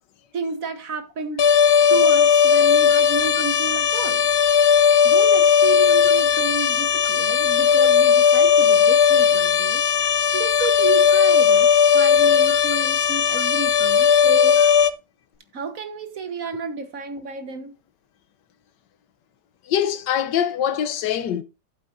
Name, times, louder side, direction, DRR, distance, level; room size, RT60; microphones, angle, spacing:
voice 1, 0.3-1.4 1.9-4.3 5.0-9.8 10.3-14.7 15.5-17.8, right 4 dB, 55° right, 1.6 m, -31 dB
sound 1, 1.4-14.9, left 7 dB, 60° left, 0.6 m, -17 dB
voice 2, 19.7-21.4, left 9 dB, 90° left, 1.5 m, -24 dB
11.5 x 8.2 x 2.6 m
omnidirectional pair, 1.8 m